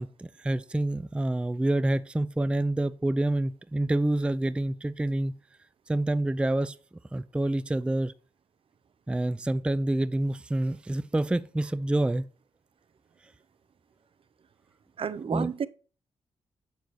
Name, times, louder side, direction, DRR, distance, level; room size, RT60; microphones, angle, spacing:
voice 1, 0.0-5.3 5.9-6.8 7.1-8.1 9.1-12.2 15.3-15.5, right 1 dB, 10° right, 0.4 m, -27 dB
voice 2, 15.0-15.7, right 7 dB, 55° right, 0.6 m, -31 dB
7.8 x 7.0 x 3.1 m
cardioid pair, 90°, 11 cm